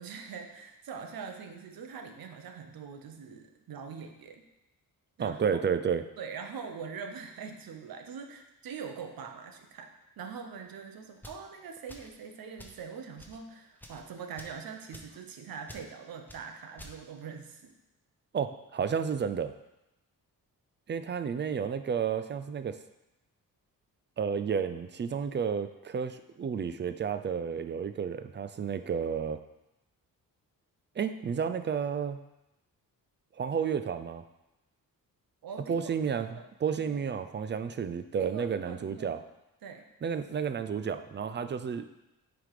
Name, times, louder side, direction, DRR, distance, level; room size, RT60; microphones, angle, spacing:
voice 1, 0.0-4.4 5.2-5.6 6.2-9.9 10.2-17.7 35.4-36.5 36.8-37.1 38.2-39.2 39.6-39.9, right 6 dB, 80° right, 5 dB, 0.9 m, -43 dB
voice 2, 5.2-6.0 18.3-19.5 20.9-22.8 24.2-29.4 31.0-32.2 33.4-34.2 35.7-39.2 40.0-41.9, right 7 dB, 35° right, 10 dB, 0.4 m, -31 dB
sound 1, 11.2-11.5 11.9-12.2 12.6-12.8 13.2-13.4 13.8-14.0 14.4-14.6 14.9-15.2 15.7-15.9 16.3-16.4 16.8-17.0, equal, 5° left, 0.7 m, -49 dB
9.4 x 3.5 x 4.8 m, 0.93 s
wide cardioid pair, 145°, 35 cm